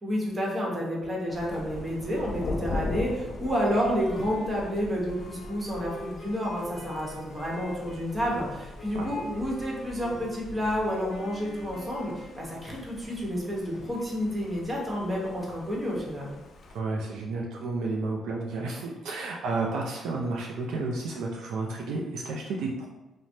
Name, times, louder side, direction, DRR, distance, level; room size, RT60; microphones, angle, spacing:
voice 1, 0.0-16.4, equal, 25° right, -3 dB, 0.9 m, -30 dB
Thunder, 1.3-16.8, left 3 dB, 55° left, 0.3 m, -41 dB
Wind instrument woodwind instrument, 3.4-8.1 8.8-12.7, equal, 40° left, 0.9 m, -45 dB
voice 2, 16.7-22.9, right 3 dB, 80° right, -1 dB, 0.4 m, -31 dB
3.2 x 2.0 x 2.6 m, 1.1 s
cardioid pair, 90°, 0 cm